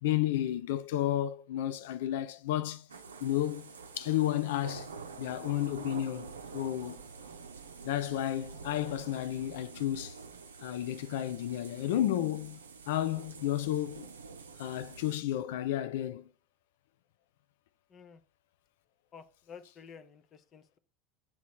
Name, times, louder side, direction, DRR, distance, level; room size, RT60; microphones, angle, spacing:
voice 1, 0.0-2.9 3.2-4.9 5.2-7.0 7.8-10.2 10.6-12.6 12.9-14.1 14.6-16.2, left 12 dB, 65° left, 0.4 m, -32 dB
sound 1, 2.9-15.1, right 5 dB, 80° right, 0.5 m, -47 dB
voice 2, 19.1-20.8, left 6 dB, 35° left, 0.7 m, -51 dB
7.3 x 3.1 x 4.2 m
figure-of-eight pair, 75°, 0 cm